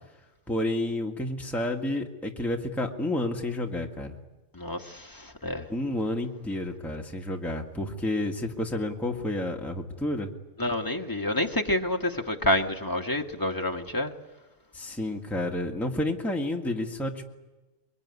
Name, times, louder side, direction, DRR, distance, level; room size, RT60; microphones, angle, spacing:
voice 1, 0.5-4.2 5.7-10.3 14.7-17.2, left 1 dB, ahead, 1 dB, 1.8 m, -30 dB
voice 2, 4.5-5.6 10.6-14.1, left 1 dB, 15° left, 4 dB, 1.3 m, -28 dB
23.5 x 22.5 x 9.7 m, 1.1 s
omnidirectional pair, 1.3 m